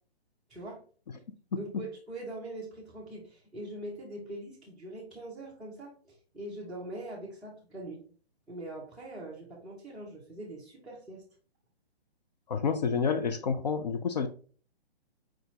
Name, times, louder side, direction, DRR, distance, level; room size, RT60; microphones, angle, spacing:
voice 1, 0.5-0.8 1.6-8.0 8.5-11.2, right 1 dB, ahead, -10 dB, 0.7 m, -42 dB
voice 2, 1.5-1.8 12.5-14.3, left 6 dB, 45° left, 7 dB, 0.4 m, -29 dB
4.5 x 4.1 x 2.7 m, 0.40 s
figure-of-eight pair, 135°, 32 cm